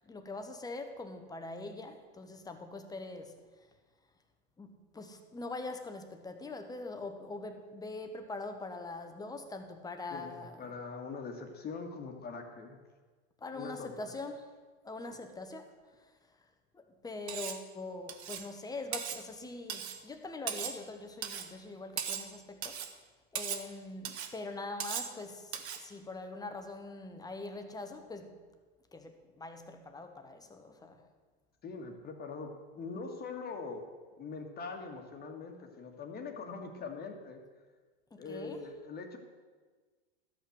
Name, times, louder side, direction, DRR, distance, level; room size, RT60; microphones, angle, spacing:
voice 1, 0.0-3.4 4.6-10.7 13.4-14.5 14.8-16.5 16.7-23.0 23.3-28.4 28.9-31.1 38.1-38.6, left 3 dB, 10° left, 1.1 m, -43 dB
voice 2, 10.1-12.8 13.5-14.1 15.2-15.3 31.6-33.9 34.2-37.4 38.2-39.2, left 4 dB, 30° left, 1.7 m, -42 dB
Cutlery silverware, 17.3-17.6 18.1-18.5 18.9-19.2 19.7-20.0 20.5-20.8 21.2-21.5 22.0-22.3 22.6-22.9 23.4-23.7 24.1-24.3 24.8-25.1 25.5-25.8, right 8 dB, 85° right, 1.3 m, -38 dB
12.5 x 5.8 x 7.8 m
supercardioid pair, 120°, 32 cm